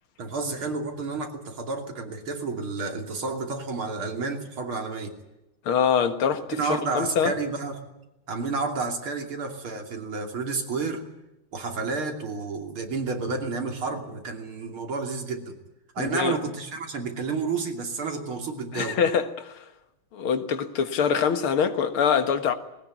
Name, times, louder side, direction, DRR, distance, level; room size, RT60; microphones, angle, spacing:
voice 1, 0.2-5.2 6.5-7.8 8.3-11.0 11.5-15.6 16.0-19.0, right 4 dB, 80° right, 3.8 m, -30 dB
voice 2, 5.7-7.3 16.0-16.4 18.7-19.6 20.1-22.5, left 7 dB, 80° left, 2.3 m, -24 dB
20.5 x 18.0 x 9.4 m
omnidirectional pair, 2.3 m